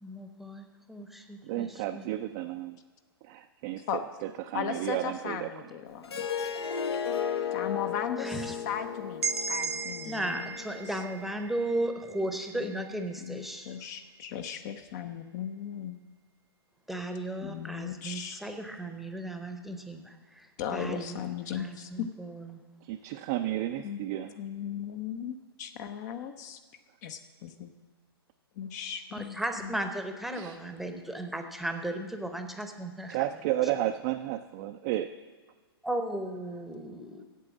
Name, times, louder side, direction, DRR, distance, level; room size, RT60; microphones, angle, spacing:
voice 1, 0.0-2.0 8.2-8.6 10.0-13.7 16.9-22.6 29.1-33.2 35.8-37.2, right 1 dB, ahead, 6 dB, 0.8 m, -36 dB
voice 2, 1.4-2.8 3.2-3.9 4.2-5.7 22.8-24.3 30.3-30.6 33.1-35.1, right 13 dB, 40° right, 6 dB, 0.4 m, -32 dB
voice 3, 4.5-6.3 7.5-10.5 12.7-16.0 17.4-18.4 20.6-21.9 23.8-24.0 24.4-26.6 27.0-27.7 28.6-29.4 29.6-29.8, left 9 dB, 45° left, 8 dB, 0.7 m, -37 dB
Harp, 6.0-11.2, left 7 dB, 75° left, 1.1 m, -35 dB
sound 1, 9.2-13.0, right 5 dB, 90° right, 0.7 m, -36 dB
8.3 x 7.6 x 7.4 m, 1.4 s
hypercardioid pair, 125°, 13 cm